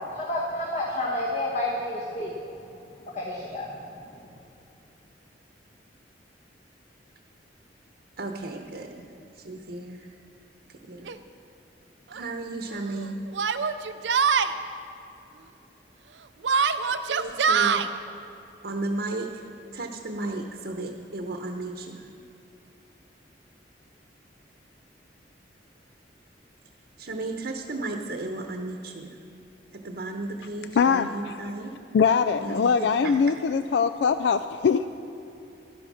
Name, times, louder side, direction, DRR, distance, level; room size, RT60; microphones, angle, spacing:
voice 1, 0.1-2.3 3.1-3.7, left 1 dB, 40° left, -3 dB, 1.5 m, -29 dB
voice 2, 8.2-9.0 9.4-10.1 10.8-11.1 12.1-13.2 17.1-17.8 18.6-19.4 19.7-22.1 27.0-29.2 29.7-31.7 32.4-33.2, right 2 dB, 65° right, 3 dB, 0.9 m, -34 dB
Yell, 11.1-11.2 12.1-12.2 13.3-14.5 16.4-17.9, right 6 dB, 90° right, 0.6 m, -23 dB
voice 3, 30.7-31.5 31.9-34.9, left 6 dB, 70° left, 11 dB, 0.3 m, -22 dB
12.5 x 10.5 x 6.3 m, 2.8 s
head